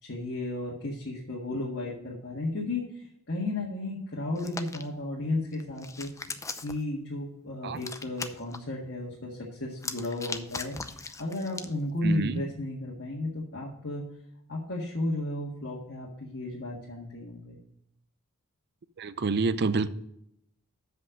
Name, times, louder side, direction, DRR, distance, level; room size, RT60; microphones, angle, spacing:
voice 1, 0.0-2.9 3.3-6.1 6.6-10.8 11.0-14.0 14.5-17.6, left 2 dB, 60° left, 1.7 m, -33 dB
Hands, 4.4-4.8 5.5-6.8 7.8-8.6 9.7-11.7, left 4 dB, 15° left, 0.5 m, -38 dB
voice 2, 12.0-12.4 19.0-19.9, right 4 dB, 50° right, 0.5 m, -27 dB
7.6 x 5.4 x 6.4 m
head